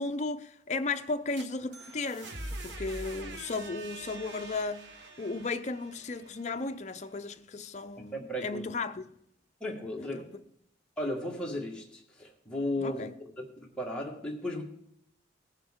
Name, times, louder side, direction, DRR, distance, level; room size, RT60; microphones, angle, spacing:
voice 1, 0.0-4.8 5.2-9.1 10.0-10.3 12.8-13.1, left 3 dB, 40° left, 0.5 m, -35 dB
sound 1, 1.1-7.0, right 2 dB, 70° right, 1.4 m, -44 dB
voice 2, 8.1-8.7 9.6-10.2 11.0-13.1 13.6-14.6, left 1 dB, 5° left, 1.8 m, -35 dB
17.5 x 7.4 x 3.6 m
head